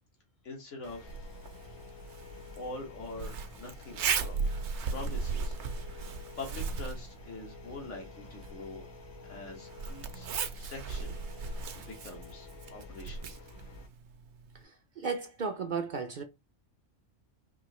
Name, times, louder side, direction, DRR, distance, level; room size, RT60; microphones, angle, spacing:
voice 1, 0.4-1.2 2.6-4.3 4.9-5.6 5.8-6.1 6.4-8.9 9.2-13.4, left 2 dB, 85° left, 1.9 m, -44 dB
sound 1, 0.8-13.9, left 3 dB, 60° left, 1.3 m, -50 dB
Zipper (clothing), 1.1-14.6, right 5 dB, 70° right, 0.9 m, -38 dB
voice 2, 14.5-16.2, right 5 dB, 55° right, 0.6 m, -35 dB
4.7 x 2.8 x 3.0 m
omnidirectional pair, 1.2 m